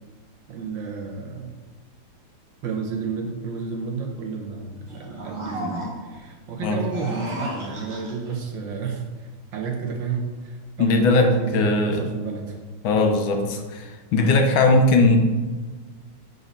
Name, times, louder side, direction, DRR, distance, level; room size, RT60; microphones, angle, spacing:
voice 1, 0.5-1.5 2.6-12.6, right 5 dB, 65° right, 2 dB, 1.5 m, -31 dB
sound 1, 4.9-6.2 6.8-8.4, equal, 40° right, 0.4 m, -34 dB
voice 2, 10.8-12.0 12.8-15.2, left 2 dB, 75° left, 4 dB, 1.4 m, -19 dB
5.7 x 4.1 x 5.2 m, 1.3 s
omnidirectional pair, 2.3 m